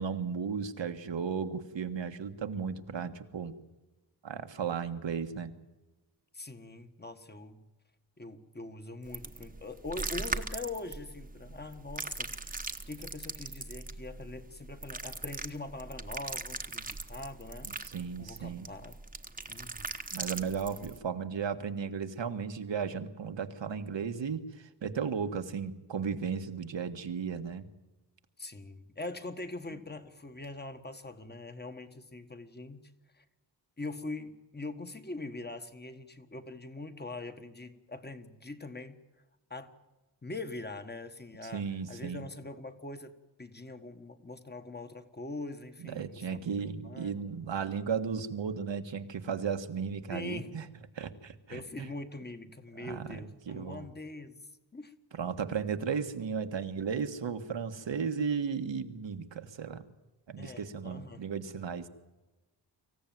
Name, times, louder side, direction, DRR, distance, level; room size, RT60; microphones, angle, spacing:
voice 1, 0.0-3.5 4.2-5.5 17.8-18.7 20.1-27.7 41.5-42.3 45.8-50.6 50.9-51.9 52.7-53.2 53.4-53.9 55.1-59.8 60.3-61.9, right 6 dB, 90° right, 8 dB, 1.7 m, -35 dB
voice 2, 6.3-7.6 8.2-12.6 12.9-17.7 18.2-19.0 19.5-19.9 28.4-32.8 33.2-33.3 33.8-39.0 39.5-39.7 40.2-43.1 43.4-47.2 50.1-50.5 51.5-54.4 54.7-54.9 60.4-61.2, left 2 dB, 25° left, 8 dB, 1.5 m, -43 dB
sound 1, 9.1-21.0, right 3 dB, 20° right, 1.1 m, -40 dB
25.0 x 16.0 x 9.3 m, 1.1 s
wide cardioid pair, 155°, 43 cm